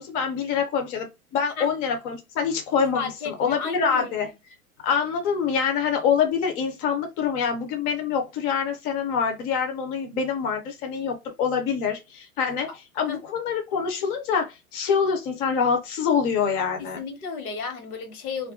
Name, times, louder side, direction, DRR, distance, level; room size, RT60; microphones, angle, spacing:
voice 1, 0.0-4.3 4.8-12.7 13.0-17.0, left 6 dB, 20° left, 0.4 m, -25 dB
voice 2, 2.9-4.2 13.1-13.2 16.8-18.5, left 5 dB, 75° left, 1.1 m, -33 dB
2.4 x 2.1 x 3.5 m
hypercardioid pair, 125°, 43 cm